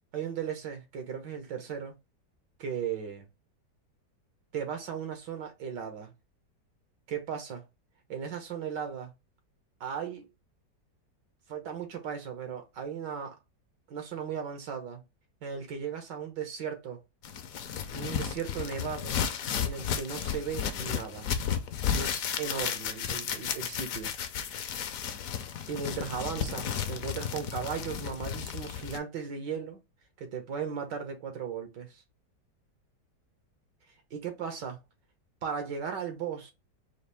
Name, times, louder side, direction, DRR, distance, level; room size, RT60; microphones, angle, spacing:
voice 1, 0.1-1.9 2.6-3.3 4.5-6.1 7.1-7.6 8.1-9.1 9.8-10.3 11.5-13.3 13.9-15.0 15.4-17.0 17.9-19.2 19.6-21.3 21.9-24.1 25.7-29.8 30.2-31.9 34.1-34.8 35.4-36.5, right 7 dB, 80° right, 1.9 m, -36 dB
sound 1, 17.2-29.0, left 8 dB, 65° left, 1.0 m, -33 dB
5.0 x 2.5 x 3.4 m
omnidirectional pair, 1.9 m